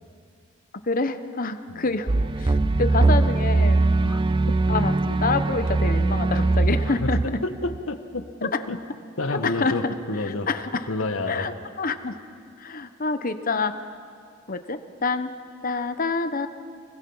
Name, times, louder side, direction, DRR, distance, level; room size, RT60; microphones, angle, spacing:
voice 1, 0.9-2.1 2.4-3.8 4.7-7.4 8.5-8.6 9.3-10.0 10.3-10.9 11.3-12.2 12.6-13.7 14.5-15.3 15.6-16.5, left 3 dB, 45° left, 10 dB, 1.0 m, -27 dB
sound 1, 2.1-7.8, right 2 dB, 25° right, 0.5 m, -21 dB
voice 2, 6.8-7.2 7.6-8.8 9.2-10.5 10.9-11.5, left 2 dB, 80° left, 8 dB, 1.4 m, -29 dB
28.5 x 20.5 x 5.6 m, 2.3 s
head